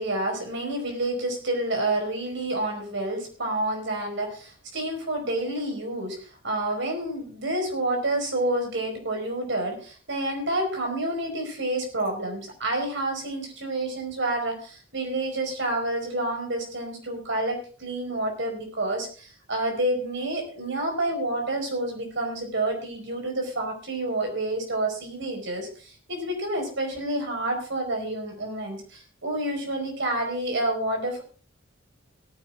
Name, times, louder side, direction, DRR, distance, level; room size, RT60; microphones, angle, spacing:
voice 1, 0.0-31.2, right 1 dB, 65° right, 3 dB, 4.9 m, -29 dB
18.0 x 9.4 x 3.7 m, 0.39 s
head